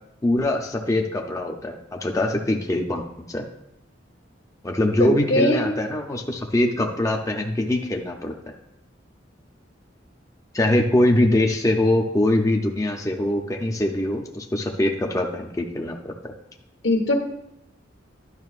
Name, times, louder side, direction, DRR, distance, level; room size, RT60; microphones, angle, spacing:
voice 1, 0.2-3.4 4.6-8.3 10.5-16.3, left 1 dB, 15° left, 2 dB, 0.5 m, -23 dB
voice 2, 5.0-5.7 16.8-17.2, left 1 dB, 80° left, 2 dB, 1.1 m, -21 dB
11.0 x 5.2 x 2.4 m, 0.83 s
head